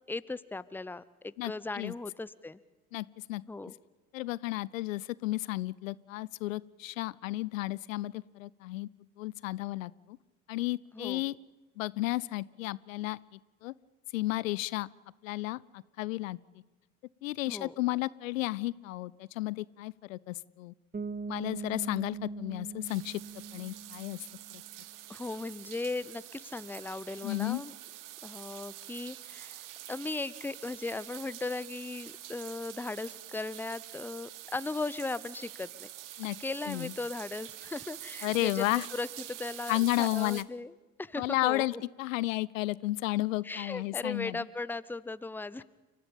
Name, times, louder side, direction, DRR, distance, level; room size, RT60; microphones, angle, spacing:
voice 1, 0.1-2.6 3.5-3.7 10.9-11.2 17.5-17.7 25.1-27.7 28.2-35.9 36.4-38.6 38.9-40.7 41.0-41.8 43.4-45.6, left 3 dB, 5° left, 18 dB, 0.8 m, -37 dB
voice 2, 1.4-1.9 2.9-3.4 4.1-8.9 9.2-10.2 10.5-11.4 11.8-13.2 13.6-13.7 14.1-14.9 15.2-16.4 17.2-20.7 21.3-23.2 23.5-24.2 24.5-24.6 27.2-27.6 36.2-36.4 36.7-36.9 38.2-38.9 39.7-40.4 41.2-44.4, left 18 dB, 65° left, 22 dB, 0.6 m, -33 dB
Bass guitar, 20.9-24.7, right 4 dB, 20° right, 1.8 m, -41 dB
sound 1, 22.8-40.4, right 13 dB, 45° right, 1.4 m, -46 dB
30.0 x 14.0 x 8.6 m, 1.2 s
figure-of-eight pair, 55°, 42 cm